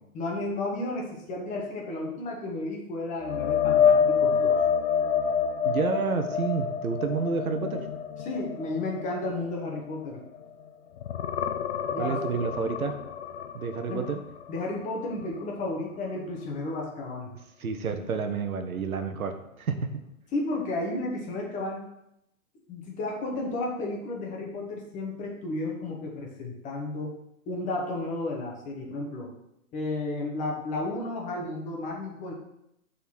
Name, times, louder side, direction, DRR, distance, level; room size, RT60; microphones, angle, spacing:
voice 1, 0.1-4.6 8.2-10.2 11.9-12.4 13.9-14.0 14.5-17.3 20.3-21.9 22.7-27.1 27.5-29.3 29.7-32.3, left 2 dB, 15° left, 0 dB, 1.2 m, -33 dB
sound 1, 3.2-10.6 11.0-14.8 15.2-15.4 18.8-18.9, left 7 dB, 50° left, 0.6 m, -27 dB
voice 2, 5.6-7.9 12.0-12.9 13.5-14.2 17.6-19.9, right 5 dB, 75° right, 6 dB, 1.1 m, -29 dB
5.6 x 4.1 x 6.1 m, 0.82 s
hypercardioid pair, 135°, 43 cm